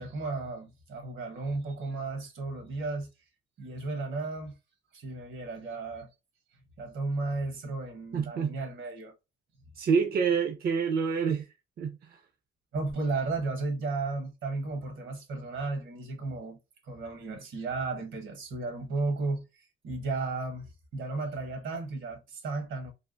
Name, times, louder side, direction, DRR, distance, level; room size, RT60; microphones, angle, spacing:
voice 1, 0.0-3.1 3.6-4.6 4.9-6.1 6.8-9.1 12.7-22.9, right 3 dB, 75° right, 1.2 m, -34 dB
voice 2, 8.1-8.5 9.8-11.5 11.8-12.2, right 6 dB, 50° right, 0.5 m, -27 dB
3.4 x 2.4 x 2.5 m
cardioid pair, 90°, 20 cm